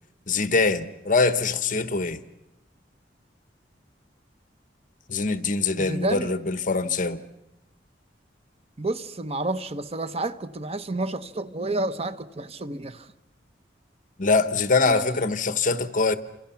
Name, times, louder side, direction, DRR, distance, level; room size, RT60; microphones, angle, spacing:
voice 1, 0.3-2.2 5.1-7.2 14.2-16.2, left 3 dB, 45° left, 1.2 m, -23 dB
voice 2, 5.8-6.3 8.8-13.1 14.9-15.2, right 2 dB, 35° right, 1.0 m, -30 dB
29.5 x 26.5 x 5.8 m
head